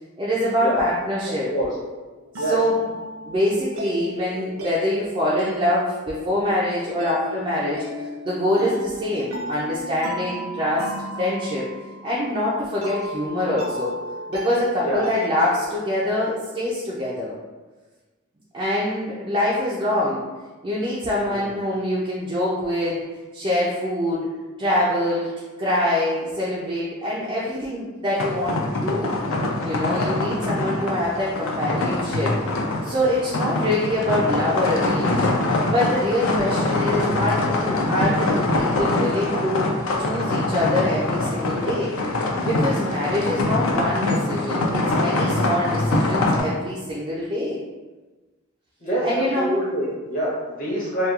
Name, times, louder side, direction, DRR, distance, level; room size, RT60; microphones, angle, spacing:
voice 1, 0.2-1.5 2.3-2.8 3.2-7.8 8.2-10.9 11.2-11.7 12.0-14.0 14.3-17.3 18.5-20.2 20.6-23.0 23.3-24.3 24.6-25.3 25.6-29.1 29.6-32.4 32.8-35.3 35.7-39.7 40.0-41.9 42.4-47.6 49.0-49.6, left 1 dB, 25° right, -7 dB, 0.3 m, -24 dB
sound 1, 1.5-16.3, equal, 90° right, 0.5 m, -35 dB
sound 2, 28.2-46.4, left 2 dB, 80° left, 0.4 m, -24 dB
voice 2, 40.0-40.3 48.8-51.1, right 1 dB, 40° left, -5 dB, 0.8 m, -26 dB
2.8 x 2.2 x 2.3 m, 1.2 s
head